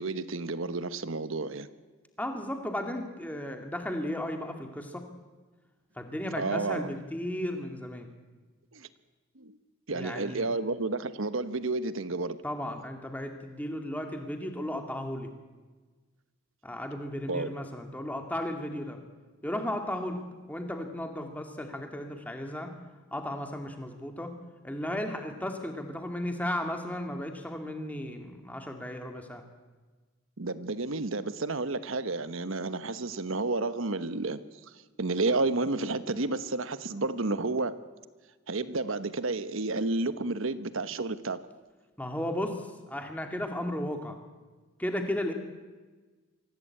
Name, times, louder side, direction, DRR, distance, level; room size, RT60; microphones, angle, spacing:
voice 1, 0.0-1.7 6.4-6.9 8.7-8.9 9.4-9.6 9.9-12.4 17.3-17.5 30.4-34.4 35.0-37.7 38.5-41.4, right 3 dB, 75° right, 12 dB, 1.2 m, -31 dB
voice 2, 2.2-5.0 6.0-8.1 9.9-10.5 12.4-15.3 16.6-19.0 19.4-20.2 20.5-22.7 23.1-24.3 24.6-29.4 42.0-44.2 44.8-45.3, left 1 dB, 5° left, 4 dB, 2.3 m, -35 dB
24.5 x 17.0 x 8.6 m, 1.3 s
head